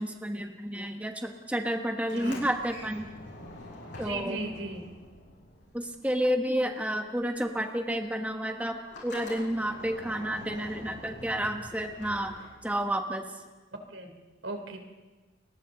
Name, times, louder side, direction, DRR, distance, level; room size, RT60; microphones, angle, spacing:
voice 1, 0.0-3.1 4.0-4.4 5.7-12.4 12.6-13.3, equal, 10° right, 4 dB, 1.2 m, -30 dB
Sliding door, 2.0-6.3 6.5-12.9, left 1 dB, 70° left, 7.8 m, -46 dB
voice 2, 2.1-2.4 4.0-4.9 13.9-14.1 14.4-14.8, right 2 dB, 80° right, 4 dB, 3.4 m, -36 dB
30.0 x 22.5 x 3.9 m, 1.3 s
head